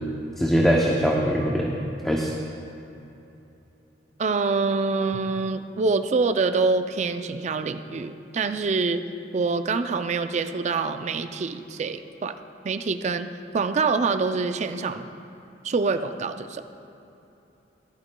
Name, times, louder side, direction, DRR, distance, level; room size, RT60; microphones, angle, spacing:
voice 1, 0.4-1.8 2.0-2.3, equal, 5° left, -2 dB, 0.6 m, -22 dB
voice 2, 4.2-9.0 9.3-12.4 12.6-13.3 13.5-15.1 15.6-16.6, right 4 dB, 40° right, 9 dB, 0.4 m, -25 dB
14.5 x 12.0 x 2.2 m, 2.9 s
head